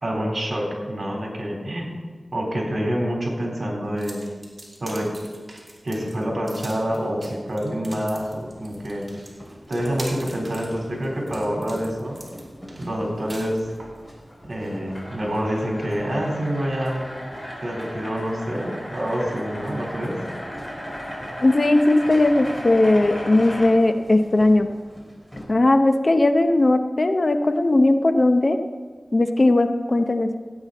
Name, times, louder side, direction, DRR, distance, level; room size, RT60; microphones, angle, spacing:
voice 1, 0.0-1.9 2.3-4.2 4.8-5.1 5.8-9.1 9.7-12.2 12.8-13.7 14.4-17.1 17.6-20.2, equal, 50° right, -2 dB, 3.9 m, -27 dB
sound 1, 4.0-14.0, right 1 dB, 30° right, 3.0 m, -43 dB
sound 2, 8.1-25.4, equal, 10° left, 3.0 m, -45 dB
sound 3, 14.2-23.7, equal, 30° left, 3.6 m, -36 dB
voice 2, 21.4-24.7 25.5-28.6 29.1-30.3, left 2 dB, 50° left, 7 dB, 0.7 m, -18 dB
16.5 x 8.8 x 4.1 m, 1.5 s
wide cardioid pair, 65°, 0 cm